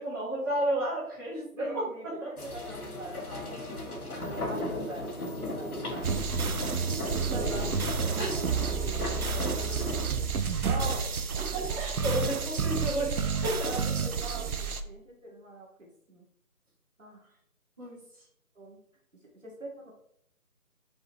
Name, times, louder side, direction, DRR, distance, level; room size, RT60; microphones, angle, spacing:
voice 1, 0.0-1.8 2.2-2.3 7.3-7.9 8.2-8.4 11.4-13.7 17.8-18.2, right 1 dB, 15° right, -13 dB, 1.4 m, -33 dB
voice 2, 1.5-6.9 7.4-7.7 8.3-10.1 10.6-11.1 13.4-16.3 17.0-17.3 18.6-18.8 19.3-19.9, right 1 dB, 60° right, -3 dB, 2.4 m, -43 dB
sound 1, 2.4-10.1, left 1 dB, 75° left, 1.7 m, -36 dB
sound 2, 6.0-14.8, right 5 dB, 75° right, 0.8 m, -30 dB
5.7 x 5.4 x 3.1 m, 0.71 s
figure-of-eight pair, 170°, 44 cm